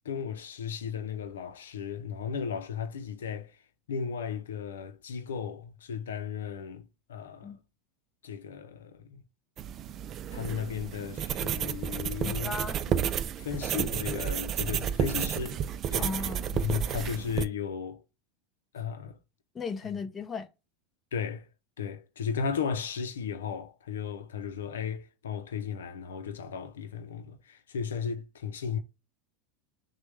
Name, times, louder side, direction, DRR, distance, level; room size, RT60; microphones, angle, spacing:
voice 1, 0.0-3.6 3.9-7.6 8.2-9.2 10.3-12.6 12.9-13.1 13.4-15.6 15.9-16.1 16.5-18.0 18.7-19.2 21.1-21.5 21.8-28.8, left 7 dB, 85° left, 0.6 m, -35 dB
sound 1, 9.6-17.5, right 9 dB, 40° right, 0.4 m, -31 dB
voice 2, 12.4-12.8 16.0-16.5 19.5-20.5, left 4 dB, 25° left, 0.8 m, -35 dB
6.1 x 2.2 x 3.3 m
hypercardioid pair, 100°, 0 cm